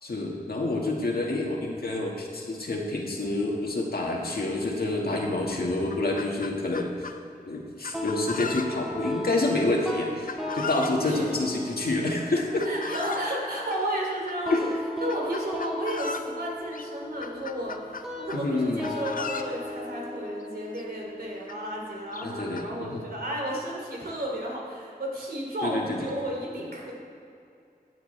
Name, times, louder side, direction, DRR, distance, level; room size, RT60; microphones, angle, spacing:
voice 1, 0.0-7.1 7.5-12.7 14.5-14.6 18.3-18.9 22.2-23.0 25.6-26.0, left 2 dB, 80° left, -1 dB, 1.7 m, -28 dB
Chicken rooster, 5.3-5.4 5.7-7.2 7.8-9.0 10.3-11.0 12.3-13.4 14.3-14.6 15.1-16.3 16.7-16.9 17.2-18.5 18.8-19.5 20.4-20.5 20.7-20.8 21.5-21.6 22.1-22.7, left 5 dB, 60° left, 0.6 m, -37 dB
sound 1, 7.9-22.9, left 1 dB, 5° right, 1.8 m, -37 dB
voice 2, 11.0-11.6 12.6-14.7 15.0-26.9, right 1 dB, 80° right, -3 dB, 2.9 m, -33 dB
15.5 x 9.4 x 3.3 m, 2.5 s
wide cardioid pair, 70°, 16 cm